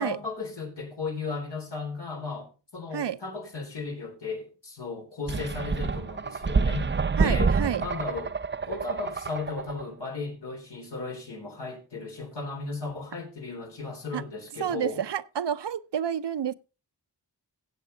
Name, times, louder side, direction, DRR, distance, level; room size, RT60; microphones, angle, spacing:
voice 1, 0.0-6.9 7.2-7.5 7.8-8.3 8.7-15.0, left 4 dB, 85° left, 4.0 m, -35 dB
sound 1, 5.3-9.8, right 4 dB, 30° right, 0.5 m, -27 dB
voice 2, 7.2-7.8 14.1-14.2 14.6-16.5, right 9 dB, 85° right, 0.7 m, -29 dB
16.5 x 7.9 x 3.9 m
wide cardioid pair, 70°, 41 cm